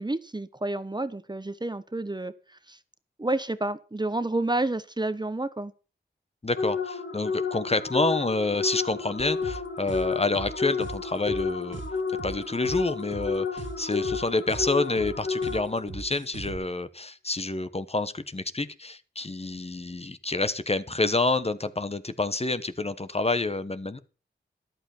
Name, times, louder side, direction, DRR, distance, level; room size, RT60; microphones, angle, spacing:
voice 1, 0.0-2.8 3.2-5.7, right 2 dB, 20° right, 14 dB, 1.0 m, -30 dB
voice 2, 6.4-11.8 12.2-24.0, left 3 dB, 30° left, 12 dB, 1.2 m, -28 dB
sound 1, 6.6-15.9, left 5 dB, 80° left, 2.4 m, -31 dB
sound 2, 9.2-16.6, right 4 dB, 85° right, 2.5 m, -39 dB
13.5 x 12.0 x 4.5 m, 0.35 s
wide cardioid pair, 95°, 19 cm